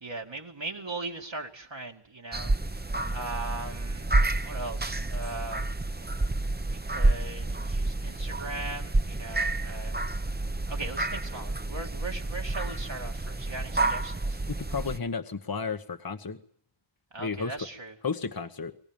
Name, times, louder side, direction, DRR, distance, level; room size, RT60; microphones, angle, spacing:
voice 1, 0.0-2.5 2.8-4.1 4.4-5.6 6.7-10.0 10.7-14.4 17.1-17.9, right 2 dB, 65° right, 0 dB, 2.5 m, -39 dB
sound 1, 2.3-15.0, right 2 dB, 20° right, 0.9 m, -29 dB
voice 2, 14.5-16.4 17.2-17.7 18.0-18.7, left 5 dB, 45° left, 8 dB, 1.2 m, -33 dB
24.0 x 17.0 x 9.0 m, 0.63 s
wide cardioid pair, 45°, 48 cm